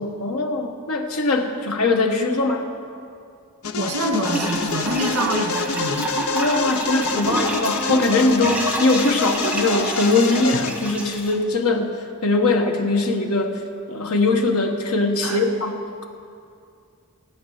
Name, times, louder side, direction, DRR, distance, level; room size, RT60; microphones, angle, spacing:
voice 1, 0.0-2.6 6.3-11.9 12.2-13.6 13.9-16.0, left 2 dB, 90° left, 3 dB, 1.4 m, -21 dB
sound 1, 3.6-10.7, left 6 dB, 70° left, 0.7 m, -27 dB
voice 2, 3.8-6.1 15.2-15.5, right 1 dB, 80° right, 2 dB, 1.9 m, -25 dB
sound 2, 4.2-11.4, right 1 dB, 5° right, 1.4 m, -28 dB
16.0 x 9.0 x 6.5 m, 2.4 s
head